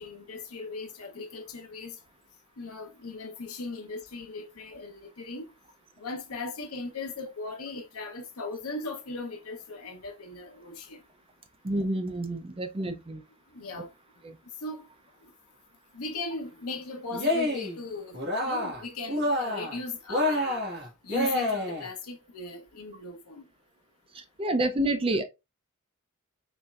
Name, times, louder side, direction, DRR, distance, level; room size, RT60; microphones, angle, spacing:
voice 1, 0.0-2.0 2.6-5.5 6.0-11.0 13.5-13.9 14.6-14.9 15.2-15.3 15.9-20.6 21.0-23.5, left 3 dB, 80° left, 0.9 m, -38 dB
voice 2, 11.6-13.2 14.2-14.4 24.1-25.2, right 1 dB, 25° right, 0.5 m, -29 dB
Cheering, 17.1-17.8 18.1-18.8 19.1-19.8 20.1-21.9, left 1 dB, 50° right, 1.5 m, -28 dB
4.3 x 3.2 x 2.4 m
head